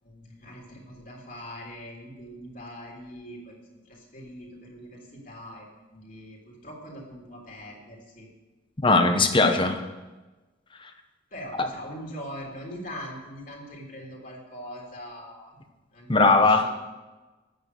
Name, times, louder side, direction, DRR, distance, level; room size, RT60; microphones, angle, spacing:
voice 1, 0.0-8.3 11.3-15.5 15.9-16.7, equal, 45° left, -2 dB, 3.3 m, -42 dB
voice 2, 8.8-9.8 16.1-16.8, left 3 dB, 25° left, 6 dB, 1.1 m, -19 dB
12.0 x 9.3 x 6.8 m, 1.2 s
head